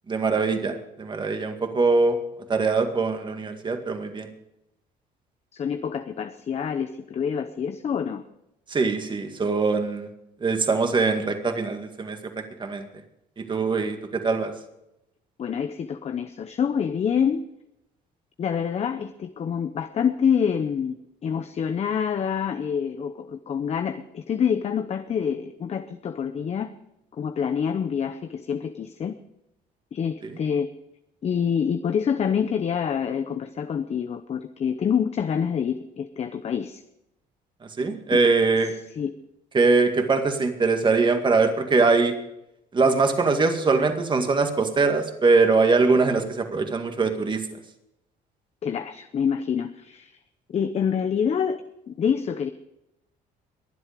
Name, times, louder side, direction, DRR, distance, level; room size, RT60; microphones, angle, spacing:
voice 1, 0.1-2.2 2.5-4.3 8.7-10.1 10.4-12.9 13.4-14.5 30.2-30.4 37.6-38.7 39.5-42.1 42.7-47.5, right 4 dB, 30° right, 5 dB, 2.1 m, -22 dB
voice 2, 5.5-8.2 15.4-17.4 18.4-26.7 27.1-29.1 29.9-30.7 31.2-36.8 38.1-38.2 39.0-39.1 48.6-50.1 50.5-52.5, left 7 dB, 40° left, 9 dB, 0.8 m, -26 dB
22.5 x 7.9 x 5.2 m, 0.85 s
cardioid pair, 110°, 17 cm